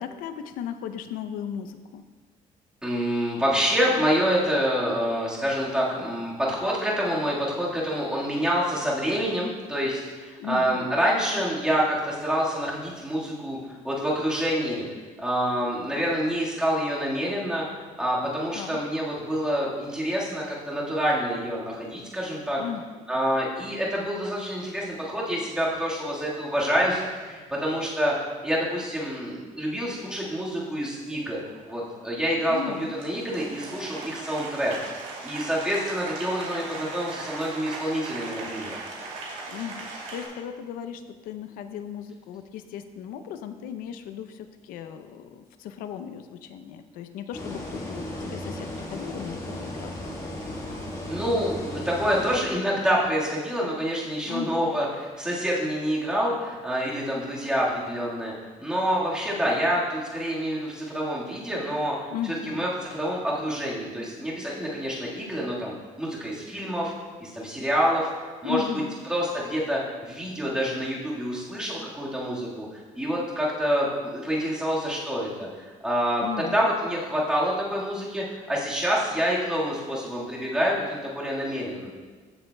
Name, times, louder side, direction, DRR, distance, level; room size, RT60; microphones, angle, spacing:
voice 1, 0.0-2.0 10.4-11.1 18.5-18.8 22.6-22.9 32.5-33.0 39.5-49.9 54.2-54.7 62.1-62.6 68.4-69.0 76.2-76.7, left 9 dB, 85° left, 9 dB, 0.6 m, -36 dB
voice 2, 2.8-13.6 13.8-14.8 15.2-22.6 23.1-28.1 28.4-31.4 31.7-34.7 35.2-38.7 51.1-58.3 58.6-66.9 67.2-68.6 69.1-81.9, equal, 5° right, -6 dB, 1.6 m, -27 dB
Applause, 31.1-40.3, right 3 dB, 65° right, 2.5 m, -39 dB
sound 1, 47.3-52.4, left 1 dB, 25° left, 1.5 m, -35 dB
15.0 x 7.2 x 2.2 m, 1.4 s
cardioid pair, 170°, 14 cm